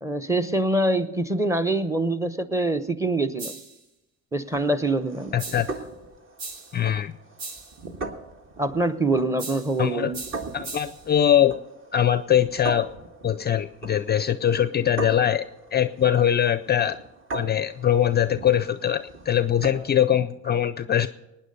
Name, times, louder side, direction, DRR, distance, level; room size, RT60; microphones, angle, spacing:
voice 1, 0.0-3.6 4.3-5.3 8.6-10.2, right 2 dB, 10° right, 12 dB, 0.8 m, -24 dB
sound 1, 3.4-3.8 5.4-5.8 6.4-6.8 7.4-7.8 9.4-9.8 10.1-11.1, right 3 dB, 85° right, 2.1 m, -38 dB
sound 2, 4.5-20.0, right 3 dB, 40° right, 1.6 m, -40 dB
voice 2, 5.3-5.7 6.7-7.1 9.8-10.1 10.5-11.5 11.9-12.9 13.2-15.5 15.7-17.0 17.3-21.1, left 10 dB, 30° left, 13 dB, 0.4 m, -22 dB
19.0 x 9.5 x 5.3 m, 0.94 s
supercardioid pair, 85°, 34 cm